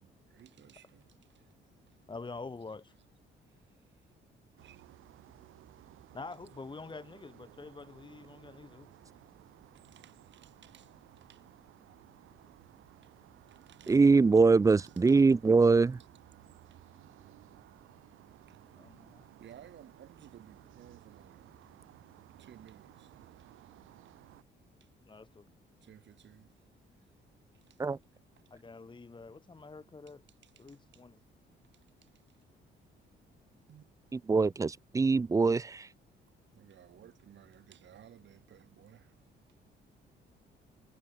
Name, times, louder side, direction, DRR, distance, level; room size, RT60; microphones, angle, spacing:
voice 1, 0.3-2.1 3.4-4.1 4.6-4.8 9.7-11.6 12.9-14.0 14.6-14.9 16.7-17.2 17.5-19.0 19.4-21.4 22.3-24.1 24.8-24.9 25.8-27.2 27.5-27.9 28.1-28.5 30.3-31.1 31.5-32.5 33.4-33.9 36.5-39.6, right 10 dB, 65° right, 5.8 m, -60 dB
voice 2, 2.1-2.9 6.1-8.9 18.8-19.3 25.1-25.4 28.5-30.2 30.6-31.2, left 3 dB, 25° left, 1.5 m, -46 dB
sound 1, 4.6-24.4, right 15 dB, 90° right, 7.7 m, -57 dB
voice 3, 13.9-16.0 27.8-28.0 34.1-35.9, right 4 dB, 15° right, 0.4 m, -23 dB
cardioid pair, 90°, 20 cm